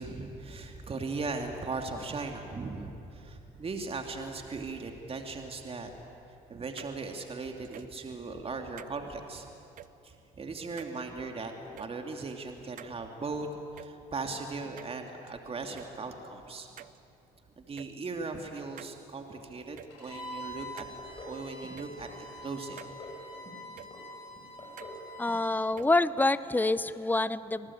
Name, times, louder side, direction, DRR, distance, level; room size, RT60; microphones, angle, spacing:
voice 1, 0.0-5.9 6.5-9.5 10.0-13.5 13.7-16.8 17.6-20.9 21.2-22.1 22.4-22.9, right 3 dB, 35° right, 4 dB, 2.4 m, -38 dB
sound 1, 6.8-6.9 7.6-8.0 8.8-8.9 9.8-9.9 10.8-11.0 11.8-11.9 12.8-12.9 13.8-13.9 14.8-15.3 15.8-15.9 16.8-17.0 17.8-17.9 18.8-18.9 19.8-19.9 20.8-21.0 21.8-21.9 22.8-22.9 23.8-23.9 24.8-25.0 25.8-25.9, right 11 dB, 55° right, 0.6 m, -47 dB
Bowed string instrument, 19.9-25.6, equal, 80° left, 7.3 m, -45 dB
sound 2, 21.0-21.4 21.6-22.2 22.5-23.2 23.5-24.0 24.4-25.0 25.3-25.5 25.7-25.8 26.2-26.3, left 2 dB, 35° left, 6.7 m, -47 dB
voice 2, 25.2-27.7, left 2 dB, 10° left, 16 dB, 0.8 m, -27 dB
25.5 x 18.5 x 8.5 m, 2.9 s
supercardioid pair, 70°, 17 cm